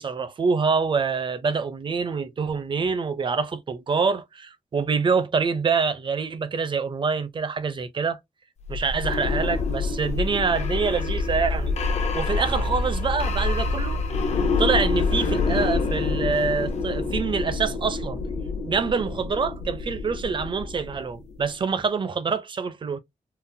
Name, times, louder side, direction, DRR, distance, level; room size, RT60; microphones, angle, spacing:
voice 1, 0.0-8.2 8.7-11.8 12.1-14.0 14.6-18.2 18.6-23.0, right 5 dB, 40° right, 0.5 m, -26 dB
sound 1, 8.6-21.4, left 3 dB, 55° left, 0.7 m, -26 dB
3.8 x 2.0 x 2.6 m
wide cardioid pair, 150°, 13 cm